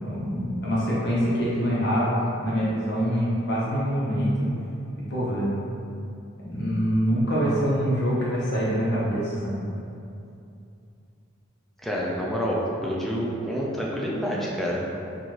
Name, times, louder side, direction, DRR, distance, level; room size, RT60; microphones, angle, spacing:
voice 1, 0.0-2.1 2.4-4.5 5.1-5.6 6.4-9.5, equal, 55° left, -8 dB, 0.9 m, -25 dB
voice 2, 11.8-14.8, equal, ahead, -4 dB, 0.4 m, -28 dB
4.2 x 2.5 x 3.0 m, 2.6 s
head